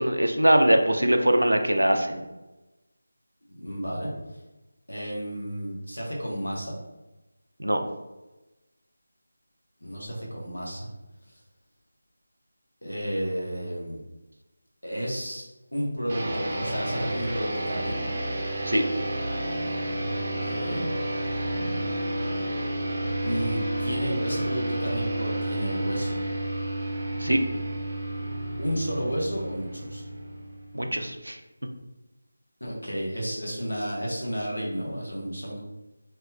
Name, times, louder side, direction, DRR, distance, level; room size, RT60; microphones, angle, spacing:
voice 1, 0.0-2.2 7.6-7.8 18.6-18.8 27.2-27.4 30.7-31.4, right 1 dB, 75° right, 5 dB, 0.5 m, -22 dB
voice 2, 3.5-4.1 4.9-6.7 9.8-10.9 12.8-14.0 14.8-15.4 15.7-18.1 20.1-20.8 21.3-21.4 23.2-26.2 28.6-30.0 32.6-35.6, equal, 75° left, -3 dB, 1.2 m, -32 dB
sound 1, 16.1-30.9, right 1 dB, 30° right, 0.6 m, -30 dB
3.3 x 2.9 x 2.2 m, 1.0 s
figure-of-eight pair, 160°, 0 cm